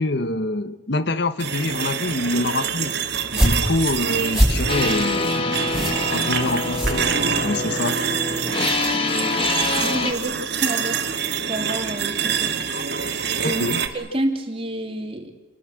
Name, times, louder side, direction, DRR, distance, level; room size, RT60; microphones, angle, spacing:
voice 1, 0.0-3.0 3.3-7.1 7.4-8.0 10.3-10.4 12.7-12.8 13.4-13.8, left 2 dB, 55° left, 12 dB, 1.2 m, -25 dB
sound 1, 1.4-13.9, right 7 dB, 55° right, 2.2 m, -26 dB
sound 2, 3.1-7.6, equal, ahead, 6.6 m, -24 dB
sound 3, 4.7-10.1, left 2 dB, 25° left, 2.1 m, -25 dB
voice 2, 9.7-11.1 11.4-12.6 13.3-13.7 13.9-15.3, right 1 dB, 30° right, 4 dB, 3.1 m, -28 dB
29.0 x 22.5 x 7.7 m, 1.2 s
head